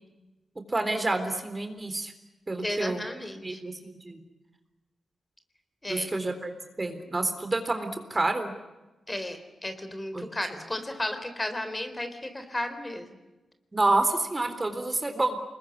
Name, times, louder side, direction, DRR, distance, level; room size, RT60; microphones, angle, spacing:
voice 1, 0.7-2.1 2.5-3.0 3.4-4.2 5.9-6.5 6.8-8.5 10.1-10.3 13.7-15.4, right 2 dB, 30° right, 7 dB, 3.8 m, -28 dB
voice 2, 2.6-3.6 5.8-6.1 9.1-13.1, left 1 dB, 20° left, 8 dB, 3.9 m, -34 dB
24.5 x 21.5 x 9.8 m, 1.1 s
cardioid pair, 55°, 0 cm